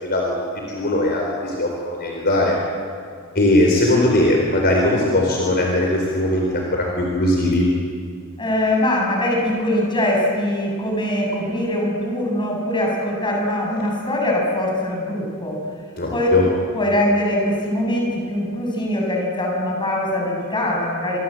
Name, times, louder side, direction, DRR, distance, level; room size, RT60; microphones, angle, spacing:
voice 1, 0.0-2.6 3.3-7.6 16.0-16.4, left 1 dB, 45° left, -1 dB, 4.3 m, -19 dB
voice 2, 8.4-15.6 16.1-16.3 16.7-21.2, left 1 dB, 20° left, -1 dB, 7.3 m, -22 dB
27.0 x 24.0 x 7.8 m, 2.1 s
head